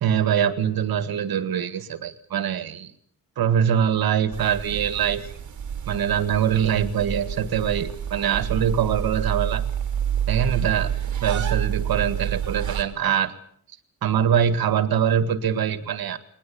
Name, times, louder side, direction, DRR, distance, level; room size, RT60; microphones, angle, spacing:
voice 1, 0.0-2.9 3.4-5.3 5.9-9.6 10.3-10.9 11.2-13.3 14.0-16.2, right 8 dB, 80° right, 13 dB, 1.9 m, -23 dB
sound 1, 4.3-12.8, right 9 dB, 55° right, 3.1 m, -28 dB
21.0 x 20.0 x 8.7 m, 0.64 s
wide cardioid pair, 150°, 36 cm